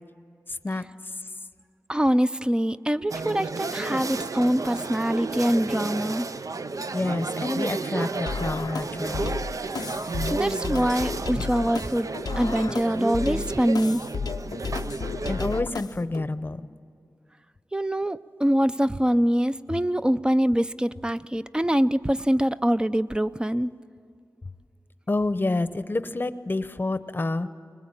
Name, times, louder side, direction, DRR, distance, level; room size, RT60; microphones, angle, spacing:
voice 1, 0.5-0.9 6.9-9.3 15.2-16.7 25.1-27.5, left 2 dB, 30° left, 13 dB, 0.8 m, -28 dB
voice 2, 1.9-6.3 10.3-12.1 12.4-14.0 17.7-23.7, equal, 15° right, 13 dB, 0.5 m, -24 dB
sound 1, 3.1-15.6, right 3 dB, 60° right, 0.6 m, -32 dB
sound 2, 8.3-16.2, left 5 dB, 85° left, 0.5 m, -33 dB
21.5 x 20.5 x 8.8 m, 2.4 s
wide cardioid pair, 85°, 7 cm